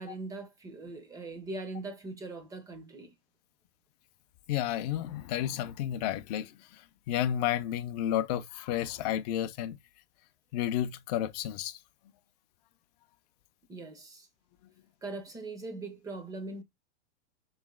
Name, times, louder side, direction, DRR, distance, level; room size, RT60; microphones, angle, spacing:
voice 1, 0.0-3.1 13.7-14.3 15.0-16.6, right 2 dB, 10° right, 0.6 m, -41 dB
voice 2, 4.5-6.5 7.1-9.8 10.5-11.8, left 11 dB, 40° left, 0.5 m, -31 dB
3.2 x 3.0 x 3.6 m
hypercardioid pair, 135°, 34 cm